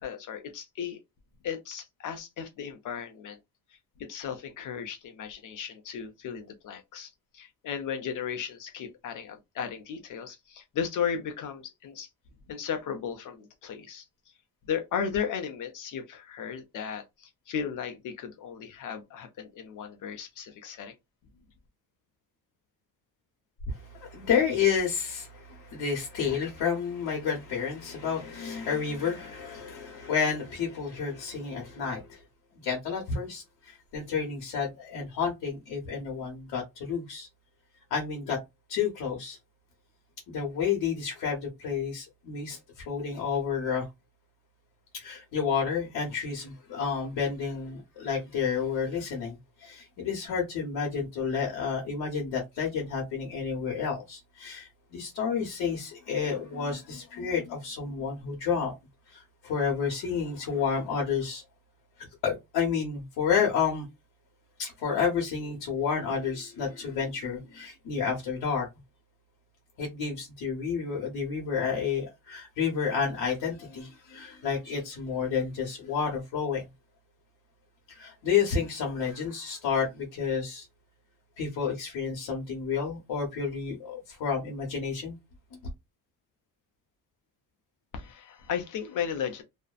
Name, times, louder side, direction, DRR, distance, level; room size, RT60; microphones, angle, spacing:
voice 1, 0.0-1.0 1.4-3.4 4.0-12.1 12.5-14.0 14.7-20.9 87.9-89.4, left 7 dB, 55° left, 0.6 m, -35 dB
voice 2, 23.7-32.2 32.6-37.3 37.9-38.4 38.7-39.4 40.3-43.9 44.9-58.7 59.1-61.4 62.0-63.9 64.6-68.7 69.8-76.7 77.9-80.7 81.4-85.2, left 6 dB, 80° left, 1.0 m, -30 dB
2.5 x 2.1 x 2.4 m
cardioid pair, 130°, 37 cm